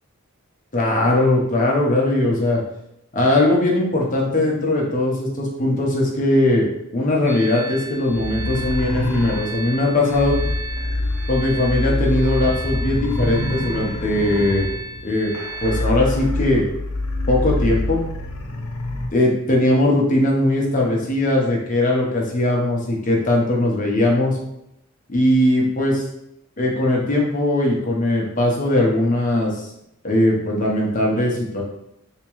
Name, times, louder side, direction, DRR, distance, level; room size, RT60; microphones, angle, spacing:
voice 1, 0.7-2.6 3.1-6.7 6.9-10.4 11.3-14.7 15.0-15.3 15.6-16.7 17.3-18.0 19.1-24.4 25.1-26.0 26.6-29.7 30.0-31.6, left 1 dB, 35° left, -2 dB, 0.8 m, -19 dB
sound 1, 7.3-15.8, right 3 dB, 35° right, 0.8 m, -35 dB
sound 2, 8.1-19.1, left 2 dB, 80° left, 0.6 m, -26 dB
3.5 x 2.9 x 3.0 m, 0.81 s
head